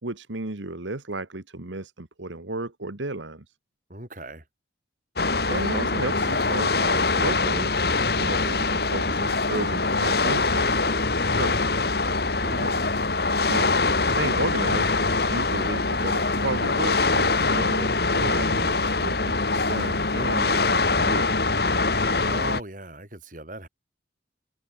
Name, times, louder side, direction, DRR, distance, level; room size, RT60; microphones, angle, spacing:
voice 1, 0.0-3.4 5.5-7.7 8.1-11.6 13.3-14.9 15.3-21.3, right 2 dB, 85° right, 1.8 m, -33 dB
voice 2, 3.9-4.4 12.4-12.9 22.2-23.7, right 1 dB, 45° right, 6.9 m, -38 dB
sound 1, 5.2-22.6, left 3 dB, 55° left, 1.9 m, -23 dB
head